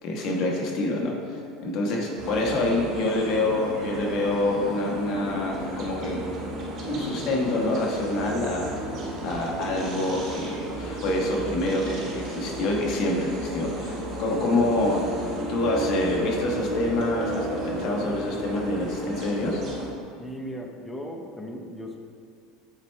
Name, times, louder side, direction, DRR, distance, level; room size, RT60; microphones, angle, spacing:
voice 1, 0.0-6.2 6.9-8.7 9.2-15.0 15.5-19.6, left 2 dB, 50° left, -1 dB, 1.2 m, -26 dB
sound 1, 2.2-19.9, right 1 dB, 45° right, 1.3 m, -33 dB
voice 2, 20.2-22.0, equal, 5° left, 1 dB, 0.7 m, -37 dB
7.8 x 4.5 x 3.2 m, 2.4 s
supercardioid pair, 135°, 0 cm